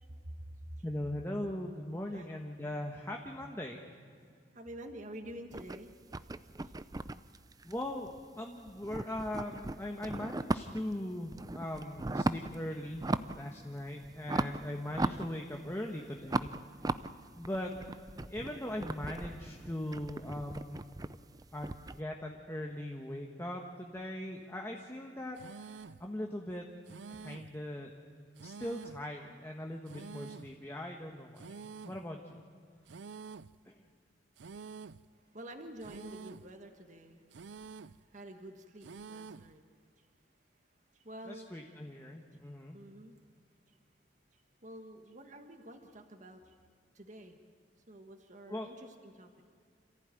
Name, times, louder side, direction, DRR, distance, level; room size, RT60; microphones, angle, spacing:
voice 1, 0.0-0.8 2.1-2.3 4.5-5.9 6.6-6.7 35.1-39.6 40.0-40.1 40.7-41.6 42.7-43.2 43.6-43.8 44.3-46.5 46.9-47.4 47.9-49.4, right 1 dB, 45° right, 4 dB, 1.6 m, -49 dB
voice 2, 0.8-3.8 7.6-13.0 13.3-16.5 17.3-17.7 18.3-20.8 21.5-26.7 27.2-27.9 28.4-31.6 31.8-32.4 33.6-33.8 41.2-42.8 48.5-48.7, left 1 dB, 15° left, 1 dB, 1.3 m, -40 dB
sound 1, 5.5-8.4 8.7-10.9 11.3-12.6 12.9-13.5 13.8-15.8 16.2-22.0, right 2 dB, 20° right, 0.5 m, -37 dB
sound 2, 25.4-26.1 26.9-27.6 28.4-29.1 29.9-30.6 31.4-32.1 32.9-33.6 34.4-35.1 35.8-36.5 37.3-38.0 38.8-39.5, right 5 dB, 90° right, 0.5 m, -48 dB
27.5 x 15.0 x 9.1 m, 2.2 s
head